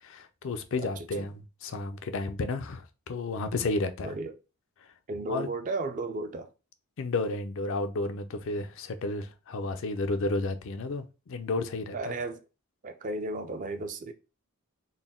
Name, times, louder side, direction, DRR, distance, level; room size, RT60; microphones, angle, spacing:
voice 1, 0.0-4.1 4.8-4.9 5.3-5.5 7.0-12.1, left 3 dB, 60° left, 0.4 m, -32 dB
voice 2, 0.8-1.3 4.0-4.4 5.1-6.5 11.9-12.4 12.8-14.1, right 2 dB, 35° right, 0.4 m, -34 dB
3.9 x 2.1 x 3.5 m
head